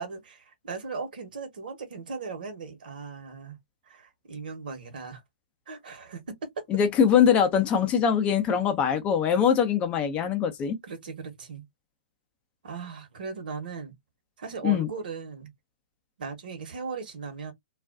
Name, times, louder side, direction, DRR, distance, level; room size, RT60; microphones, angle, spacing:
voice 1, 0.0-3.6 3.9-5.2 5.7-6.5 10.8-11.6 12.6-13.9 14.4-15.5 16.2-17.5, right 5 dB, 65° right, 1.1 m, -38 dB
voice 2, 6.7-10.8 14.6-14.9, left 8 dB, 25° left, 0.5 m, -22 dB
2.4 x 2.2 x 2.3 m
figure-of-eight pair, 120°, 5 cm